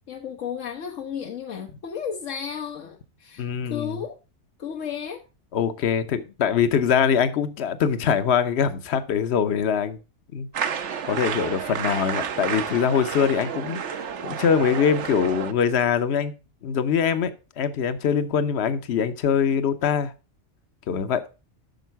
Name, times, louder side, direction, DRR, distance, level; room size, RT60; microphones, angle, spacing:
voice 1, 0.1-4.2 4.6-5.2, left 7 dB, 85° left, 1.3 m, -33 dB
voice 2, 3.4-4.0 5.5-10.0 10.3-10.5 11.0-16.3 16.6-20.1 20.9-21.2, left 7 dB, 65° left, 1.0 m, -23 dB
sound 1, 10.5-15.5, right 7 dB, 70° right, 1.1 m, -30 dB
9.2 x 6.4 x 4.5 m
omnidirectional pair, 1.3 m